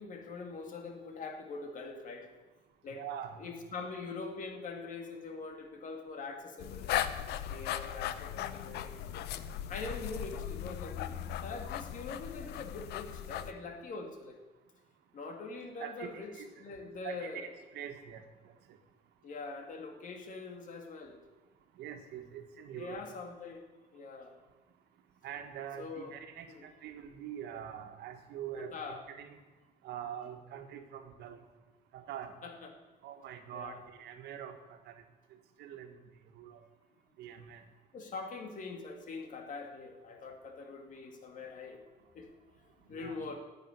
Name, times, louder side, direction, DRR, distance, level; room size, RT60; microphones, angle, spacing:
voice 1, 0.0-2.3 2.8-3.0 3.4-7.0 7.3-9.0 9.7-14.4 15.1-16.3 16.6-17.5 19.2-21.2 22.7-23.6 23.9-24.3 25.8-26.1 26.5-26.6 28.7-29.0 32.4-32.7 33.5-33.8 37.9-41.8 42.1-42.3 42.6-43.4, left 4 dB, 50° left, 4 dB, 2.4 m, -43 dB
voice 2, 2.9-3.5 9.8-9.9 15.8-16.5 17.0-18.2 21.7-23.0 25.2-29.4 29.8-31.4 31.9-32.3 33.0-35.0 35.6-35.9 36.3-36.6 37.2-37.6 42.9-43.2, right 9 dB, 75° right, 6 dB, 1.6 m, -44 dB
sound 1, 6.6-13.5, left 11 dB, 80° left, 0.8 m, -38 dB
10.5 x 8.1 x 9.8 m, 1.2 s
cardioid pair, 110°, 17 cm